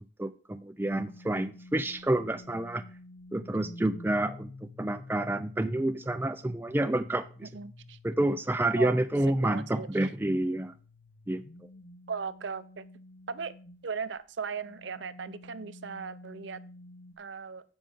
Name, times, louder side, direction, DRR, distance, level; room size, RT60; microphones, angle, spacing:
voice 1, 0.2-2.8 3.3-4.5 4.8-7.5 8.0-10.7 11.3-11.4, right 1 dB, 10° right, 9 dB, 0.3 m, -29 dB
sound 1, 0.8-13.9 14.5-17.1, left 1 dB, 75° left, 0.8 m, -51 dB
voice 2, 7.5-8.0 8.8-9.0 9.4-9.9 12.1-12.9 13.3-13.5 13.8-16.6 17.2-17.6, right 5 dB, 65° right, 14 dB, 0.6 m, -37 dB
15.0 x 5.4 x 3.6 m, 0.38 s
head